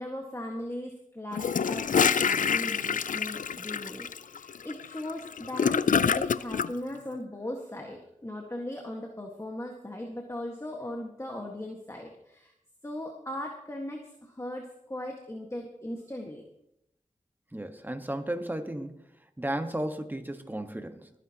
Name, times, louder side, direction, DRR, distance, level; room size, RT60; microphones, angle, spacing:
voice 1, 0.0-12.5 12.8-16.4, left 1 dB, 20° left, 1 dB, 1.7 m, -38 dB
Gurgling / Toilet flush, 1.3-6.7, left 7 dB, 80° left, 0.4 m, -26 dB
voice 2, 17.5-18.9 19.4-21.1, right 1 dB, 15° right, 6 dB, 1.5 m, -34 dB
28.5 x 10.0 x 3.0 m, 0.79 s
wide cardioid pair, 60°, 13 cm